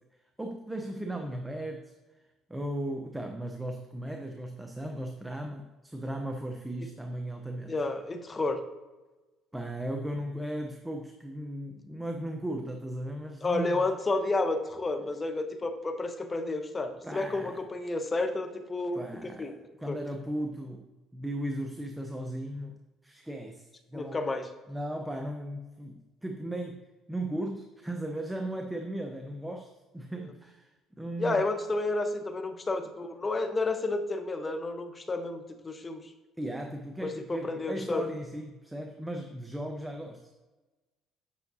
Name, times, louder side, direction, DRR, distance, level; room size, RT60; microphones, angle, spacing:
voice 1, 0.4-1.9 2.5-7.8 9.5-13.8 17.0-17.6 18.9-22.8 23.0-24.4 24.7-31.4 36.4-40.3, right 1 dB, 10° right, 4 dB, 0.7 m, -37 dB
voice 2, 7.7-8.6 13.4-19.0 19.4-19.5 19.9-20.0 23.9-24.5 31.2-36.0 37.0-38.0, left 2 dB, 25° left, 7 dB, 0.9 m, -31 dB
8.4 x 5.8 x 2.7 m, 1.2 s
supercardioid pair, 80°, 0 cm